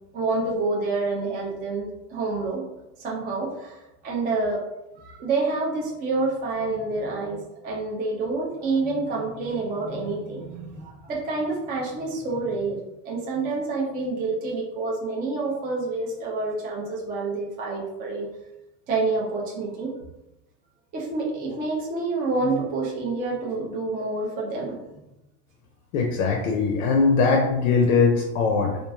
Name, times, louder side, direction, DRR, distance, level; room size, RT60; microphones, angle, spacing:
voice 1, 0.1-2.6 3.0-3.8 4.0-4.6 5.0-12.8 13.0-18.3 18.9-19.9 20.9-24.8, right 3 dB, 20° right, -4 dB, 0.4 m, -28 dB
voice 2, 25.9-28.8, left 4 dB, 60° left, 1 dB, 0.6 m, -21 dB
3.0 x 2.4 x 2.3 m, 0.91 s
supercardioid pair, 125°, 48 cm